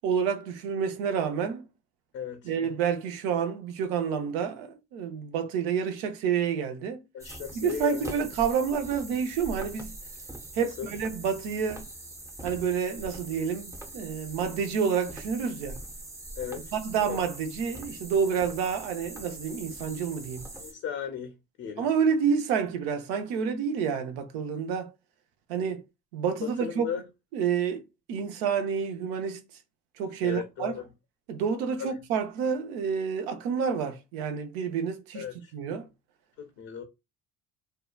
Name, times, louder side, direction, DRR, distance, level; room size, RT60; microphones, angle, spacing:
voice 1, 0.0-1.7 2.4-7.0 7.5-9.9 10.5-11.8 12.4-15.8 16.7-20.5 21.8-24.9 25.5-25.8 26.1-26.9 27.3-27.8 28.1-29.4 30.0-30.7 31.3-35.2 35.5-35.9, right 7 dB, 80° right, 0.6 m, -29 dB
voice 2, 2.1-2.5 7.1-8.2 10.6-10.9 16.4-16.7 17.0-17.2 20.6-21.9 26.4-27.1 30.2-30.8 31.8-31.9 35.1-35.5 36.4-36.8, left 8 dB, 55° left, 0.6 m, -36 dB
sound 1, 7.2-20.7, right 1 dB, 10° right, 0.6 m, -43 dB
2.7 x 2.2 x 2.3 m
hypercardioid pair, 70°, 30 cm